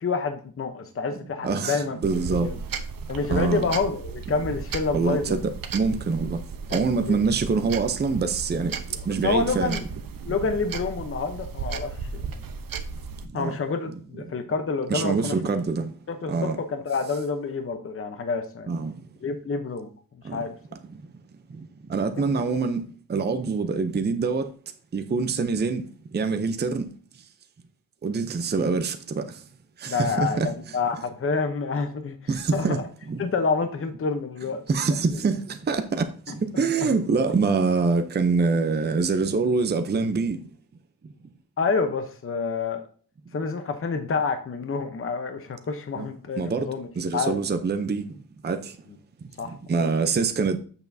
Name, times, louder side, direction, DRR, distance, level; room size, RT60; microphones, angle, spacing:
voice 1, 0.0-2.0 2.4-2.5 3.1-5.4 6.7-7.2 9.2-9.8 10.2-12.3 13.3-15.3 16.1-18.7 19.2-19.9 20.3-20.5 22.2-22.3 29.9-32.2 32.5-32.8 33.2-34.6 36.3-36.6 41.6-42.8 43.3-46.9 47.1-47.4 49.4-49.9, left 4 dB, 35° left, 0.8 m, -28 dB
voice 2, 1.4-2.5 3.3-3.7 4.9-6.4 6.7-8.7 9.1-9.8 13.3-13.6 14.9-15.9 16.3-16.6 18.7-18.9 20.2-20.4 21.9-22.8 23.1-24.5 24.9-25.8 26.1-26.9 28.0-29.2 29.8-30.5 32.3-32.8 33.1-33.2 34.7-40.4 46.0-46.1 46.4-46.7 47.0-48.1 48.4-48.7 49.5-50.6, right 4 dB, 30° right, 0.6 m, -25 dB
sound 1, 2.0-13.3, right 5 dB, 70° right, 0.8 m, -35 dB
8.0 x 7.0 x 2.7 m
wide cardioid pair, 165°, 36 cm